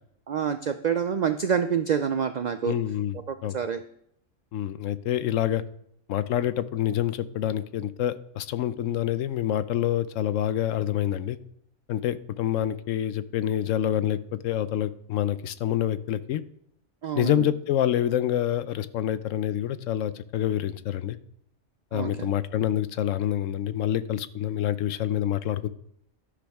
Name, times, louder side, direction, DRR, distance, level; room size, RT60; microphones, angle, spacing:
voice 1, 0.3-2.8 3.3-3.8 17.0-17.5 21.9-22.3, right 7 dB, 90° right, 10 dB, 0.3 m, -27 dB
voice 2, 2.6-3.2 3.4-3.6 4.5-5.6 6.1-11.4 11.9-16.4 17.2-21.2 21.9-25.7, left 11 dB, 80° left, 14 dB, 1.0 m, -27 dB
12.5 x 9.8 x 3.5 m, 0.73 s
omnidirectional pair, 1.3 m